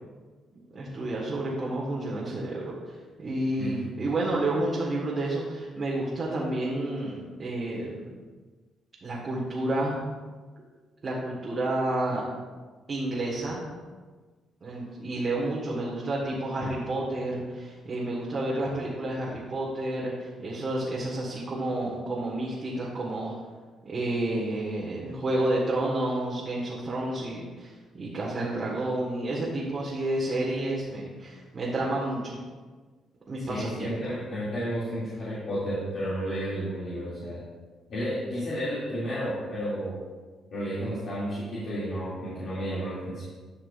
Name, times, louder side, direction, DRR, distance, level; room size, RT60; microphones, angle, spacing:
voice 1, 0.7-8.1 9.0-10.0 11.0-12.2 12.9-13.7 14.6-23.3 23.8-32.4 33.3-34.2, right 1 dB, 40° right, -5 dB, 1.6 m, -30 dB
voice 2, 3.6-3.9 33.5-37.4 37.9-40.0 40.5-43.2, equal, 60° left, -10 dB, 2.5 m, -32 dB
11.5 x 5.9 x 2.5 m, 1.4 s
cardioid pair, 90°, 0 cm